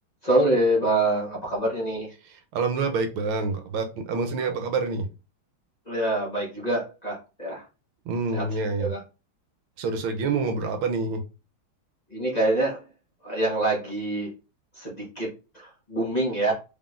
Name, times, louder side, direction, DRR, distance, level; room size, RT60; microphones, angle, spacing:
voice 1, 0.2-2.1 4.4-4.5 5.8-7.6 8.3-8.4 8.8-9.0 12.1-12.8 13.2-14.3 14.7-15.3 15.5-16.5, right 1 dB, 20° left, -5 dB, 1.3 m, -25 dB
voice 2, 2.5-5.0 8.1-8.9 9.8-11.2, right 4 dB, 80° right, 6 dB, 1.6 m, -27 dB
4.3 x 3.8 x 2.5 m, 0.31 s
omnidirectional pair, 2.3 m